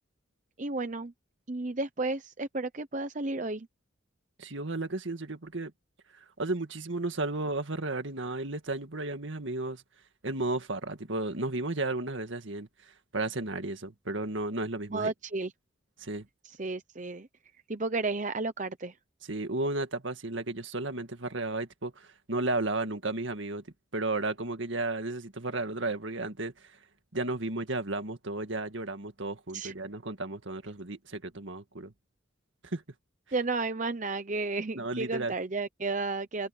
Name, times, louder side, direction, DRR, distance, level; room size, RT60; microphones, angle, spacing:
voice 1, 0.6-1.1 1.5-3.7 14.9-15.5 16.4-17.3 17.7-19.0 29.5-29.7 33.3-36.5, right 3 dB, 40° right, 0.9 m, -32 dB
voice 2, 4.4-5.7 6.1-9.8 10.2-15.1 16.0-16.3 19.3-23.6 23.9-26.7 27.1-31.9 32.6-32.8 34.8-35.3, right 2 dB, 70° right, 1.9 m, -33 dB
head